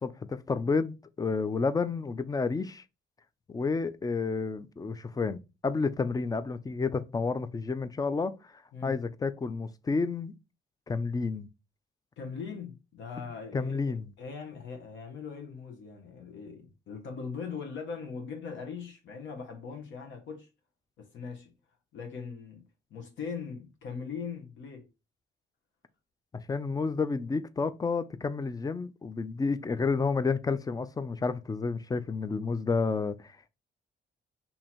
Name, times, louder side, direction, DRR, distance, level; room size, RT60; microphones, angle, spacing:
voice 1, 0.0-2.8 3.5-8.3 8.8-10.3 10.9-11.5 13.5-14.0 26.5-33.5, left 4 dB, 20° left, 0.4 m, -30 dB
voice 2, 12.2-20.5 21.0-21.5 21.9-22.6 22.9-24.9, left 5 dB, 70° left, 0.9 m, -40 dB
2.9 x 2.7 x 4.2 m
cardioid pair, 90°, 20 cm